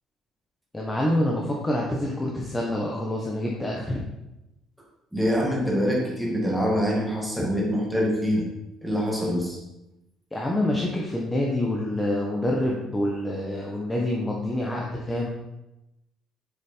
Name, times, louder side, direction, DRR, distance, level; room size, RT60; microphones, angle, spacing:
voice 1, 0.7-4.0 7.4-7.5 10.3-15.3, left 1 dB, 10° left, -2 dB, 1.2 m, -27 dB
voice 2, 5.1-8.5 8.8-9.6, equal, 5° right, -2 dB, 2.2 m, -25 dB
7.5 x 6.9 x 4.6 m, 0.94 s
cardioid pair, 135°, 0 cm